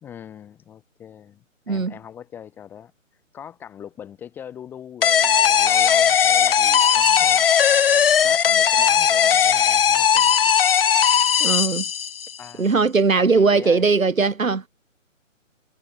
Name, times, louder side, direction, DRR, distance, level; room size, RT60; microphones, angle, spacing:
voice 1, 0.0-2.9 3.3-7.9 8.2-10.3 12.4-12.7 13.2-13.9, left 9 dB, 5° left, 0.9 m, -41 dB
sound 1, 5.0-12.4, left 8 dB, 45° left, 1.4 m, -18 dB
voice 2, 11.4-11.9 12.6-14.7, right 4 dB, 85° right, 2.3 m, -19 dB
figure-of-eight pair, 145°, 39 cm